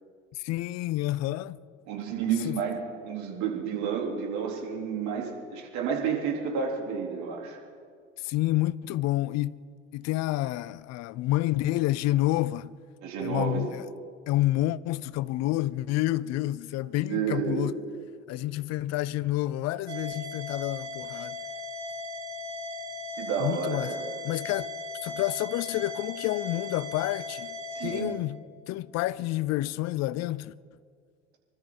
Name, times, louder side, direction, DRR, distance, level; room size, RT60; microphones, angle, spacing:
voice 1, 0.3-1.6 2.4-2.6 8.2-9.6 9.9-12.7 13.2-13.9 14.3-17.7 18.3-21.4 23.4-23.9 24.2-24.7 25.0-28.4 28.7-30.5, left 16 dB, 50° left, 0.6 m, -29 dB
voice 2, 1.9-7.6 13.0-13.7 17.1-17.7 23.2-24.1 27.7-28.1, right 7 dB, 55° right, 4.0 m, -30 dB
sound 1, 19.9-28.0, left 2 dB, 80° right, 3.1 m, -37 dB
25.5 x 13.0 x 4.2 m
hypercardioid pair, 70°, 34 cm